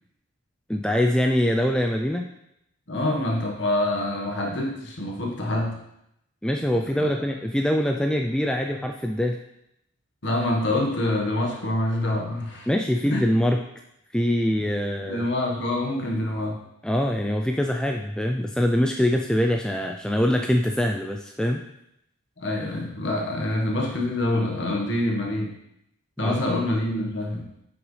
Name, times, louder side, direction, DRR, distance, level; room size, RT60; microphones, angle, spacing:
voice 1, 0.7-2.3 6.4-9.4 12.7-13.6 14.1-15.3 16.8-21.6 26.2-26.4, equal, 5° left, 2 dB, 0.3 m, -23 dB
voice 2, 2.9-5.8 7.0-7.1 10.2-12.7 13.0-13.2 14.6-14.7 15.1-16.6 22.4-25.6 26.2-27.5, left 1 dB, 55° left, 0 dB, 1.4 m, -26 dB
9.3 x 6.0 x 3.2 m, 0.80 s
head